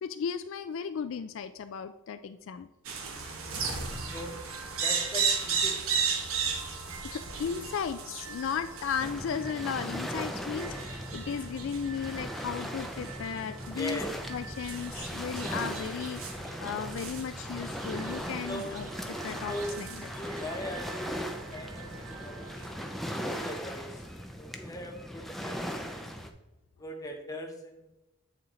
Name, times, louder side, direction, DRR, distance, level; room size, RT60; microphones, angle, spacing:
voice 1, 0.0-2.7 7.0-14.0 14.3-20.3, left 7 dB, 65° left, 10 dB, 0.3 m, -35 dB
sound 1, 2.8-22.7, right 5 dB, 80° right, 1.1 m, -36 dB
voice 2, 4.8-5.8 13.7-14.1 18.5-18.7 19.5-19.8 20.1-22.8 23.0-24.1 24.4-26.0 26.8-27.8, equal, 15° left, 2 dB, 0.9 m, -40 dB
Waves surf, 9.0-26.3, equal, ahead, 0.4 m, -39 dB
8.2 x 4.2 x 3.8 m, 0.98 s
head